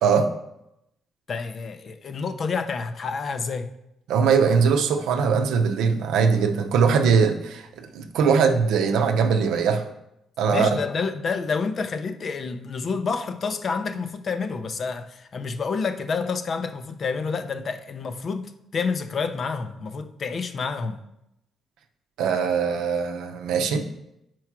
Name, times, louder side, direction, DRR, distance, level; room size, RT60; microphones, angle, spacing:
voice 1, 0.0-0.3 4.1-9.8 10.4-10.7 22.2-23.9, right 6 dB, 90° right, 0.6 m, -21 dB
voice 2, 1.3-3.7 10.5-21.0, left 5 dB, 50° left, 0.5 m, -29 dB
4.7 x 4.5 x 5.9 m
cardioid pair, 90°, 0 cm